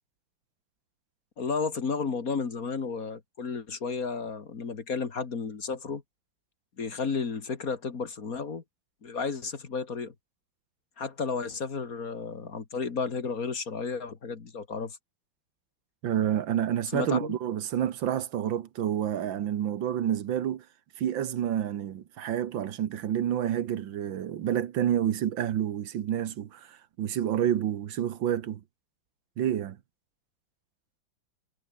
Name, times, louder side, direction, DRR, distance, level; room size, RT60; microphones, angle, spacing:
voice 1, 1.4-6.0 6.8-8.6 9.0-10.1 11.0-15.0 16.9-17.4, left 5 dB, 45° left, 2.3 m, -32 dB
voice 2, 16.0-20.6 21.0-28.6 29.4-29.8, right 10 dB, 75° right, 1.8 m, -29 dB
omnidirectional pair, 2.1 m